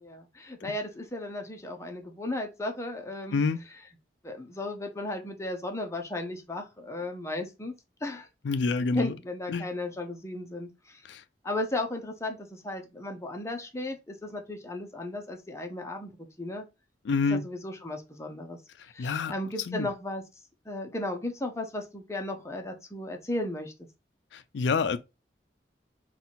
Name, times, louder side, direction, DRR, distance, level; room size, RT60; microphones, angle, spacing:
voice 1, 0.0-3.4 4.2-7.7 8.0-8.3 8.9-11.0 11.4-16.7 17.3-18.6 18.9-20.2 20.7-23.7, left 2 dB, 15° left, 0.8 m, -35 dB
voice 2, 8.4-9.2 9.5-9.7 11.1-11.2 17.1-17.4 19.0-19.3 19.7-19.9 24.3-25.0, left 4 dB, 80° left, 0.4 m, -27 dB
3.9 x 2.4 x 4.0 m
head